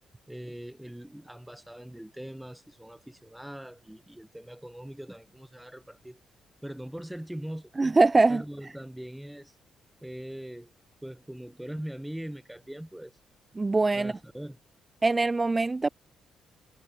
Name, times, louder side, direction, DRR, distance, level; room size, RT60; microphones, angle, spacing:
voice 1, 0.3-6.2 6.6-7.7 8.3-9.5 10.0-10.7 11.0-13.1 13.9-14.6, right 1 dB, 5° right, 3.0 m, -41 dB
voice 2, 7.8-8.4 13.6-14.1 15.0-15.9, right 3 dB, 20° right, 0.5 m, -22 dB
cardioid pair, 90°, 0 cm